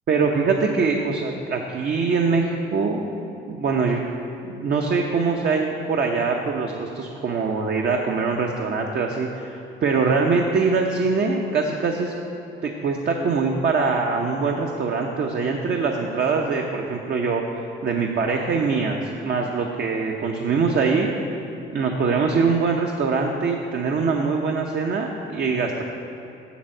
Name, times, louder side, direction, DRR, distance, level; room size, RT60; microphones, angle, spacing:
voice 1, 0.1-2.4 2.7-3.0 3.5-4.0 4.4-12.1 12.6-17.4 17.8-21.1 21.7-25.8, right 4 dB, 55° right, 1 dB, 0.8 m, -23 dB
7.1 x 7.0 x 7.6 m, 2.9 s
cardioid pair, 90°, 20 cm